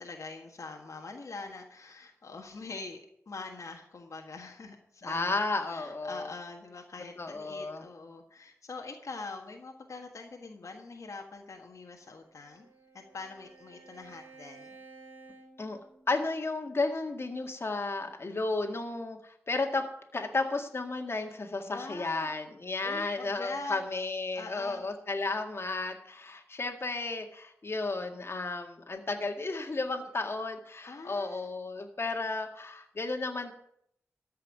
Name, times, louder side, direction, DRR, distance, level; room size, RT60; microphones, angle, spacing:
voice 1, 0.0-3.0 3.3-12.7 12.9-14.8 21.6-22.3 22.8-23.8 24.3-24.8 30.9-31.4, left 3 dB, 75° left, 2 dB, 1.5 m, -44 dB
voice 2, 5.0-6.3 7.2-7.8 15.6-15.8 16.1-19.9 20.1-33.5, left 3 dB, 50° left, 3 dB, 1.9 m, -33 dB
Bowed string instrument, 11.9-16.4, right 3 dB, 35° right, 4.5 m, -54 dB
14.0 x 5.7 x 9.1 m, 0.71 s
wide cardioid pair, 85°, 5 cm